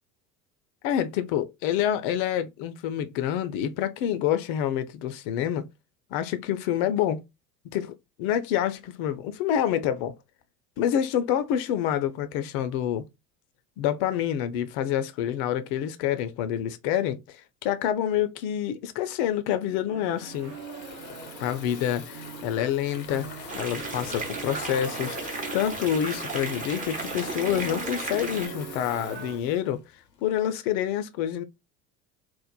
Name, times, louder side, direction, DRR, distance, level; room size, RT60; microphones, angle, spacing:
voice 1, 0.8-5.7 6.1-7.2 7.7-10.1 10.8-13.0 13.8-20.5 21.4-23.3 23.5-29.8 30.2-31.4, left 10 dB, 40° left, 0.4 m, -27 dB
sound 1, 19.9-29.4, right 6 dB, 80° right, 0.8 m, -42 dB
Water tap faucet / Fill (with liquid), 20.1-30.4, left 7 dB, 85° left, 0.6 m, -44 dB
sound 2, 23.5-28.5, right 3 dB, 15° right, 0.6 m, -34 dB
2.9 x 2.0 x 2.2 m
figure-of-eight pair, 70°, 48 cm